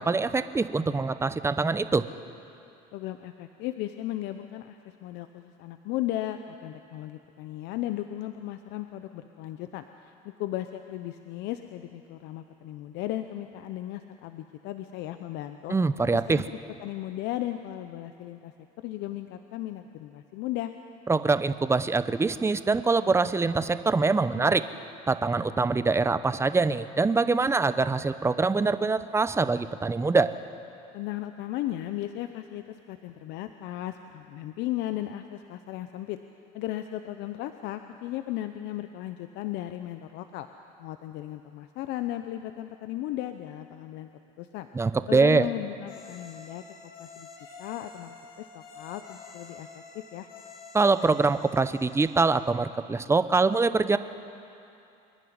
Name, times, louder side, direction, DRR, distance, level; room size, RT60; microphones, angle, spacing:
voice 1, 0.0-2.0 15.7-16.4 21.1-24.6 25.1-30.3 44.7-45.5 50.7-54.0, right 3 dB, 15° right, 12 dB, 0.8 m, -24 dB
voice 2, 2.9-15.7 16.1-16.4 16.8-20.7 30.9-36.2 36.5-40.5 40.8-44.1 44.4-44.7 45.1-46.6 47.0-47.3 47.6-50.3, left 14 dB, 65° left, 9 dB, 0.8 m, -36 dB
sound 1, 45.8-52.5, left 4 dB, 85° left, 3.3 m, -48 dB
25.0 x 11.0 x 9.6 m, 2.7 s
supercardioid pair, 95°, 19 cm